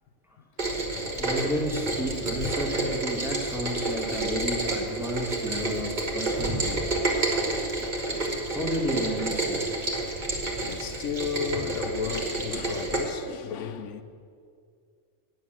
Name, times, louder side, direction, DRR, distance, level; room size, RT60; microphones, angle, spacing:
Rain, 0.6-13.0, right 2 dB, 40° right, 1.6 m, -29 dB
voice 1, 1.2-6.8 8.4-9.8, equal, ahead, 1.4 m, -32 dB
voice 2, 10.7-14.0, left 6 dB, 85° left, 1.0 m, -33 dB
9.2 x 6.6 x 8.8 m
omnidirectional pair, 1.2 m